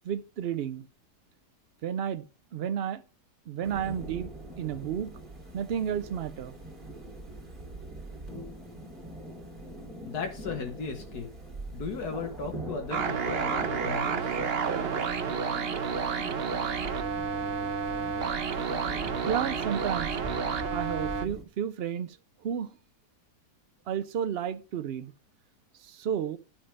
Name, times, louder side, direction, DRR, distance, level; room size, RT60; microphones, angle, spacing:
voice 1, 0.0-0.9 1.8-2.3 2.5-3.0 3.5-4.3 4.6-5.1 5.5-6.5 19.3-20.2 20.7-22.2 22.4-22.7 23.9-25.1 25.8-26.4, right 8 dB, 90° right, 0.5 m, -32 dB
sound 1, 3.6-21.4, right 2 dB, 30° right, 2.8 m, -42 dB
voice 2, 10.1-11.3 11.7-14.4, left 5 dB, 70° left, 1.9 m, -36 dB
sound 2, 12.9-21.3, right 6 dB, 45° right, 0.9 m, -30 dB
11.0 x 6.7 x 5.3 m
omnidirectional pair, 1.8 m